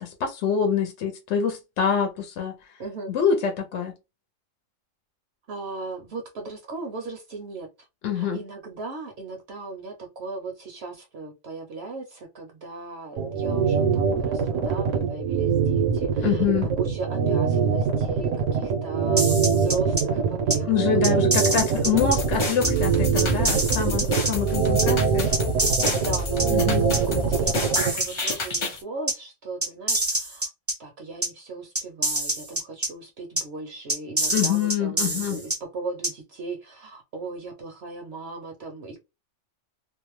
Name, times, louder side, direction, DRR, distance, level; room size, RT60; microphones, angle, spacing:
voice 1, 0.0-2.5 3.1-3.9 8.0-8.4 16.2-16.7 20.6-25.3 26.5-26.8 34.3-35.4, left 7 dB, 70° left, 0.9 m, -25 dB
voice 2, 2.8-3.1 5.5-7.9 8.1-21.5 23.8-24.2 25.9-30.5 30.8-39.0, right 3 dB, 65° right, 0.8 m, -37 dB
sound 1, 13.2-27.9, right 6 dB, 80° right, 1.1 m, -23 dB
sound 2, 19.2-20.0 20.5-20.6 21.0-22.2 22.6-22.7 23.2-24.3 24.8-24.9 25.3-26.4 26.9-27.0 27.5-28.6 29.1-29.2 29.6-30.7 31.2-31.3 31.7-32.9 33.4-33.5 33.9-35.6 36.0-36.1, right 1 dB, 15° right, 0.5 m, -25 dB
sound 3, 22.0-28.8, left 2 dB, 45° left, 0.3 m, -29 dB
2.6 x 2.0 x 3.0 m
omnidirectional pair, 1.3 m